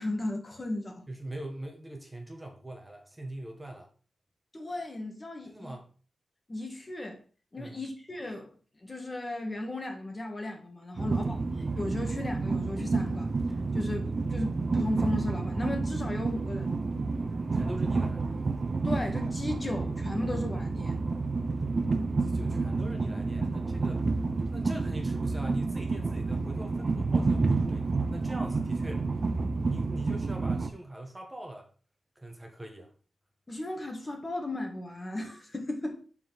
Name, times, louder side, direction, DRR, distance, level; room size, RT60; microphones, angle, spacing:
voice 1, 0.0-1.1 4.5-5.8 6.5-7.2 7.5-8.5 8.8-13.3 13.7-16.8 18.8-21.0 33.5-36.0, left 1 dB, 30° left, 1.8 m, -35 dB
voice 2, 1.1-3.9 5.4-5.9 7.6-7.8 10.9-11.1 13.7-13.8 17.5-18.2 22.2-24.1 24.5-29.1 29.6-31.7 32.1-32.9, right 1 dB, 15° right, 1.5 m, -41 dB
Train, 11.0-30.7, right 3 dB, 45° right, 0.8 m, -30 dB
5.9 x 4.6 x 5.8 m
cardioid pair, 85°, 0 cm